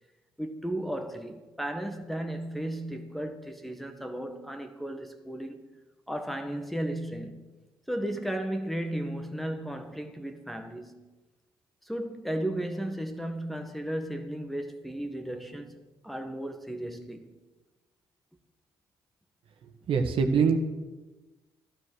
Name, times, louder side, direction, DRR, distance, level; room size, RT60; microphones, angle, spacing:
voice 1, 0.4-5.6 6.1-7.5 7.9-11.0 11.8-15.8 16.0-17.3, right 1 dB, ahead, 1.6 m, -34 dB
voice 2, 19.9-20.6, right 5 dB, 60° right, 1.7 m, -23 dB
12.5 x 12.5 x 6.4 m
hypercardioid pair, 55°, 10 cm